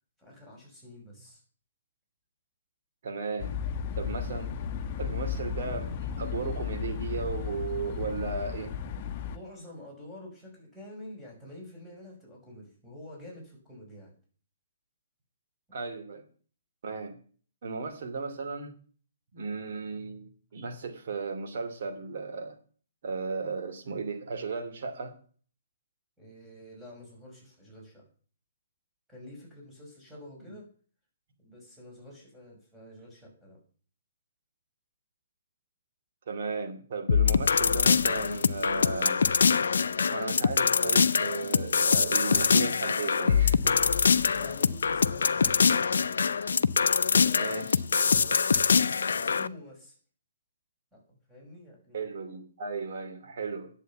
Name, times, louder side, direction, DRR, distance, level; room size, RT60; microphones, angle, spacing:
voice 1, 0.2-1.4 9.3-14.1 26.2-28.1 29.1-30.7 31.4-33.6 44.3-45.7 47.0-50.0 50.9-51.0 51.3-52.2, left 1 dB, ahead, 5.7 m, -48 dB
voice 2, 3.0-3.5 4.0-4.5 5.0-8.7 15.7-16.2 16.8-17.2 17.6-18.7 19.3-22.5 23.0-25.1 30.5-30.6 36.3-39.2 40.1-44.0 47.4-47.8 51.9-53.7, right 4 dB, 55° right, 2.8 m, -35 dB
sound 1, 3.4-9.4, left 8 dB, 35° left, 1.1 m, -34 dB
sound 2, 37.1-49.5, left 5 dB, 65° left, 0.5 m, -24 dB
10.0 x 8.1 x 7.0 m
figure-of-eight pair, 125°, 0 cm